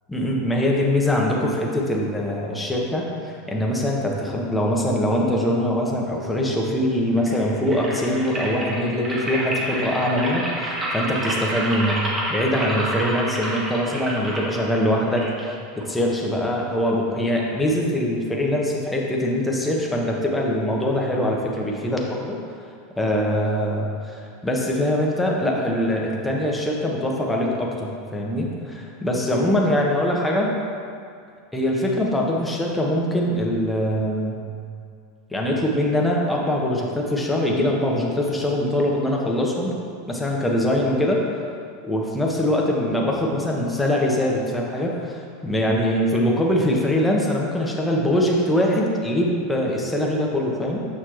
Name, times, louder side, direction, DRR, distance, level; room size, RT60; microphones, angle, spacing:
voice 1, 0.1-12.0 12.3-22.4 23.0-30.6 31.5-34.4 35.3-39.7 40.1-41.2 41.8-50.9, left 1 dB, 10° left, -2 dB, 1.0 m, -23 dB
sound 1, 7.1-16.1, right 1 dB, 25° right, 1.5 m, -29 dB
6.8 x 5.7 x 3.1 m, 2.3 s
hypercardioid pair, 100°, 0 cm